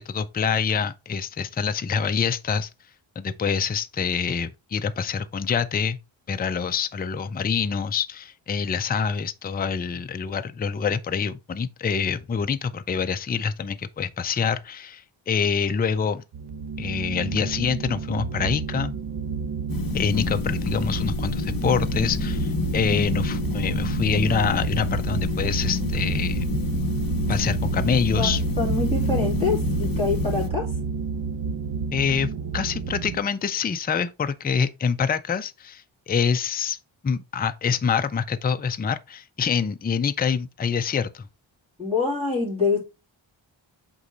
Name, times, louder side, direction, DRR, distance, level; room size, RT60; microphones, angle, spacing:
voice 1, 0.0-2.7 3.2-6.0 6.3-16.2 16.8-18.9 19.9-26.5 27.3-28.4 31.9-36.8 37.0-41.3, left 6 dB, 20° left, 0.3 m, -26 dB
sound 1, 16.3-33.2, right 4 dB, 60° right, 0.7 m, -29 dB
sound 2, 19.7-30.5, left 6 dB, 45° left, 0.7 m, -30 dB
voice 2, 28.2-30.6 41.8-42.8, left 4 dB, 15° right, 2.8 m, -25 dB
8.1 x 3.1 x 3.8 m
wide cardioid pair, 160°, 47 cm